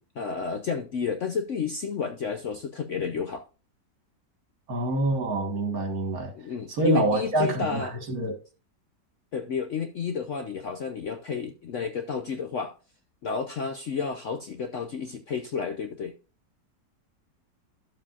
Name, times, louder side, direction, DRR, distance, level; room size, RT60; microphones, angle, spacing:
voice 1, 0.0-3.4 6.3-7.9 9.3-12.7 13.2-16.1, left 6 dB, 60° left, 0.8 m, -31 dB
voice 2, 4.7-6.3 6.8-8.3, right 2 dB, 55° right, 2.1 m, -26 dB
12.0 x 7.3 x 2.5 m
omnidirectional pair, 1.9 m